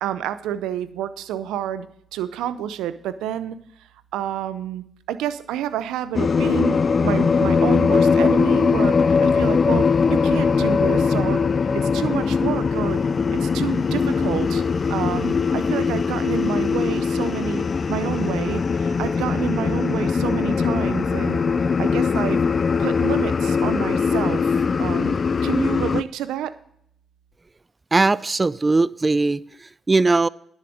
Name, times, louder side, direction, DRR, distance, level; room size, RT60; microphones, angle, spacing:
voice 1, 0.0-1.9 2.1-3.6 4.1-6.8 7.0-11.4 11.7-13.0 13.3-14.6 14.9-21.4 21.8-22.4 22.8-25.2 25.4-26.5, right 10 dB, 85° right, 13 dB, 0.6 m, -29 dB
sound 1, 6.1-26.0, left 5 dB, 45° left, 0.4 m, -21 dB
voice 2, 27.9-30.3, right 3 dB, 30° right, 20 dB, 0.4 m, -20 dB
10.5 x 7.2 x 6.4 m, 0.71 s
supercardioid pair, 55°, 0 cm